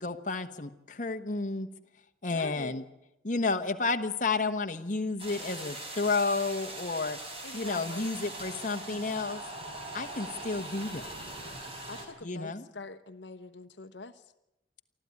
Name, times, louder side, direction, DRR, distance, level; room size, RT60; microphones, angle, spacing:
voice 1, 0.0-1.7 2.2-2.8 3.2-7.2 7.5-9.4 9.9-11.1 12.2-12.6, left 3 dB, 45° left, 6 dB, 1.2 m, -31 dB
voice 2, 2.3-2.8 7.4-8.1 11.9-14.1, left 3 dB, 75° left, 10 dB, 1.0 m, -44 dB
sound 1, 5.2-12.1, right 1 dB, 30° right, 4.9 m, -41 dB
24.5 x 14.5 x 9.7 m, 0.89 s
head